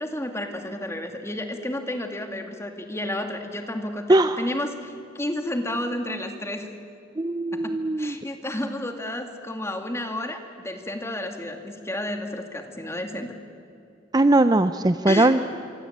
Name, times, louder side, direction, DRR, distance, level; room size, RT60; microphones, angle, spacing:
voice 1, 0.0-6.7 7.5-13.4 15.1-15.4, left 1 dB, 15° left, 5 dB, 2.2 m, -31 dB
voice 2, 4.1-4.4 7.2-8.1 14.1-15.4, right 2 dB, 20° right, 11 dB, 0.5 m, -20 dB
25.5 x 24.5 x 8.7 m, 2.5 s
head